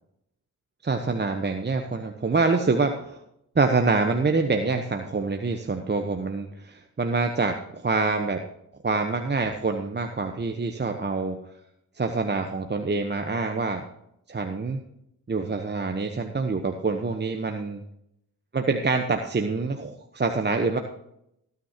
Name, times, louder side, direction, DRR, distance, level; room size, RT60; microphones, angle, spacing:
voice 1, 0.8-3.2 3.5-8.4 8.8-11.4 12.0-13.8 14.3-14.8 15.3-17.8 18.5-20.8, right 3 dB, 30° right, 5 dB, 1.2 m, -26 dB
18.5 x 9.6 x 3.0 m, 0.78 s
supercardioid pair, 50°, 37 cm